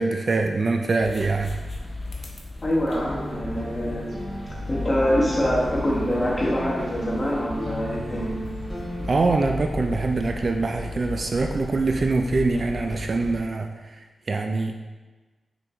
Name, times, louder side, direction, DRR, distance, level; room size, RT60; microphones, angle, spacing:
voice 1, 0.0-1.6 9.0-13.7 14.3-14.7, right 3 dB, 40° right, 4 dB, 0.3 m, -24 dB
sound 1, 1.0-13.4, left 2 dB, 45° left, 0.9 m, -35 dB
voice 2, 2.6-4.2 4.7-8.3, equal, 25° left, -4 dB, 1.3 m, -25 dB
sound 2, 2.9-9.1, right 1 dB, 5° right, 1.2 m, -34 dB
6.1 x 4.7 x 3.4 m, 1.2 s
wide cardioid pair, 140°, 0 cm